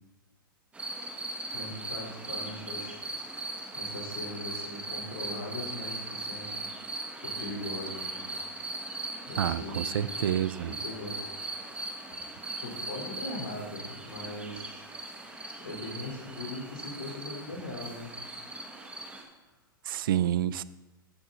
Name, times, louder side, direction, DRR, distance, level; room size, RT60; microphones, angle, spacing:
sound 1, 0.7-19.2, right 2 dB, 10° right, 1.6 m, -39 dB
voice 1, 1.5-3.0 3.3-3.4 3.7-8.4 9.3-10.3 10.6-11.9 12.6-14.8 15.6-18.2 18.6-19.0, left 2 dB, 80° left, -2 dB, 3.6 m, -41 dB
voice 2, 9.4-10.7 19.9-20.6, right 11 dB, 70° right, 17 dB, 0.4 m, -28 dB
14.5 x 6.2 x 3.9 m, 1.1 s
hypercardioid pair, 115°, 12 cm